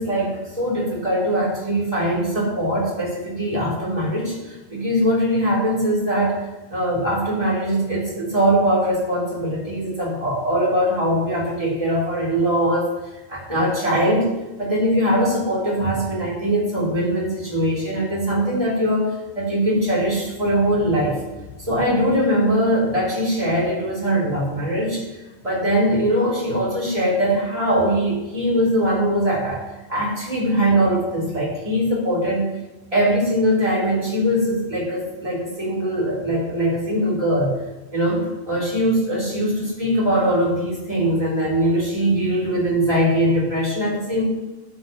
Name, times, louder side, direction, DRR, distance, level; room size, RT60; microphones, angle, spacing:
voice 1, 0.0-12.9 13.3-14.3 14.6-19.1 19.3-21.2 21.6-25.0 25.4-29.6 29.9-32.5 32.9-37.5 37.9-44.3, equal, 30° right, -6 dB, 3.8 m, -21 dB
12.0 x 8.5 x 3.2 m, 1.1 s
omnidirectional pair, 1.1 m